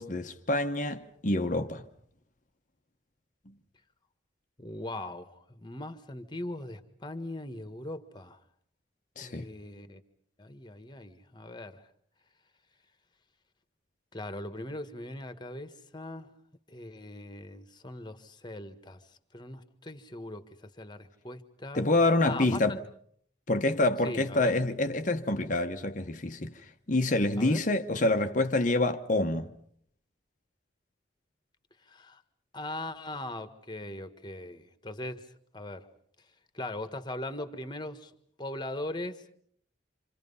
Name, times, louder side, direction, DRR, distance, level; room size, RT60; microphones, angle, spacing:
voice 1, 0.0-1.8 3.5-3.6 9.2-9.5 21.7-22.8 23.5-29.5, left 2 dB, 40° left, 1.0 m, -27 dB
voice 2, 4.6-8.4 9.2-10.0 10.4-11.8 14.1-16.3 16.7-19.0 19.3-21.8 22.2-22.8 24.0-24.6 27.4-27.6 31.9-32.2 32.5-35.9 36.5-38.1 38.4-39.3, left 1 dB, 20° left, 1.5 m, -40 dB
27.5 x 27.5 x 5.5 m
head